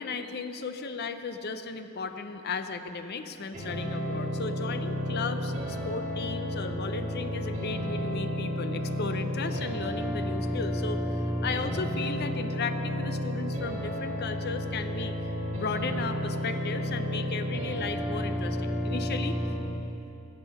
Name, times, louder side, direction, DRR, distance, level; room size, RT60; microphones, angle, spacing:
voice 1, 0.0-15.1 15.5-19.4, left 4 dB, 50° left, 9 dB, 0.6 m, -35 dB
sound 1, 3.5-19.5, equal, 35° right, 2.1 m, -31 dB
16.5 x 6.7 x 5.3 m, 3.0 s
head